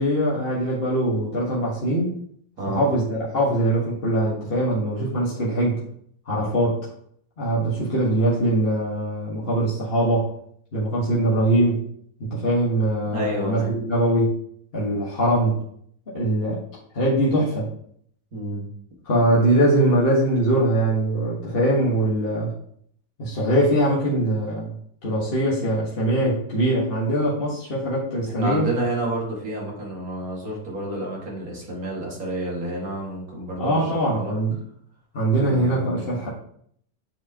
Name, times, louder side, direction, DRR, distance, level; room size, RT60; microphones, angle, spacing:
voice 1, 0.0-2.1 2.7-5.8 6.2-6.8 7.4-10.3 10.7-11.8 12.3-14.3 14.7-15.6 16.1-16.6 16.9-17.7 19.0-22.5 23.2-24.7 25.0-28.7 33.6-34.6 35.1-36.3, right 1 dB, 40° left, -6 dB, 1.5 m, -22 dB
voice 2, 2.6-2.9 13.1-13.8 18.3-18.7 28.4-34.3 35.4-36.2, right 1 dB, 65° right, -3 dB, 2.3 m, -30 dB
8.0 x 4.7 x 2.8 m, 0.65 s
omnidirectional pair, 1.6 m